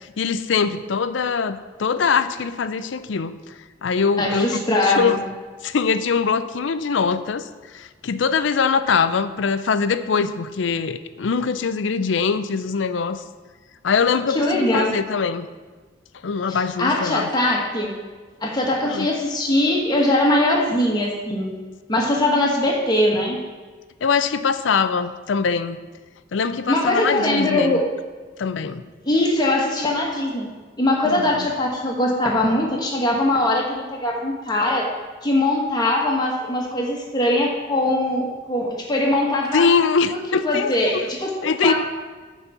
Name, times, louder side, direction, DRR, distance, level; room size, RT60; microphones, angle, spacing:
voice 1, 0.2-3.3 3.8-5.2 5.6-7.5 7.7-13.2 13.8-15.5 16.2-17.3 18.9-19.1 24.0-25.8 26.3-27.8 28.4-28.8 31.0-31.5 39.5-41.1 41.4-41.7, left 5 dB, 80° left, 12 dB, 0.5 m, -22 dB
voice 2, 4.2-5.1 14.3-14.9 16.5-17.9 18.4-21.6 21.9-23.4 26.7-27.9 29.0-30.5 30.8-34.9 35.2-39.6 40.1-41.3 41.6-41.7, left 1 dB, 20° left, -1 dB, 1.4 m, -21 dB
9.7 x 4.1 x 7.1 m, 1.4 s
head